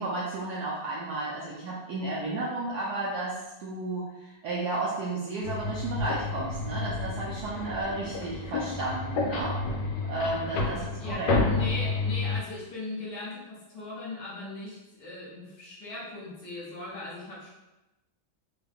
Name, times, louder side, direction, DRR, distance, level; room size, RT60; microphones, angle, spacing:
voice 1, 0.0-9.6 10.1-11.3, right 2 dB, 75° right, -5 dB, 0.9 m, -33 dB
sound 1, 5.4-12.4, left 3 dB, 85° left, 1.4 m, -30 dB
voice 2, 10.6-17.5, left 2 dB, 60° left, -7 dB, 1.6 m, -39 dB
3.6 x 2.3 x 3.4 m, 0.99 s
omnidirectional pair, 2.2 m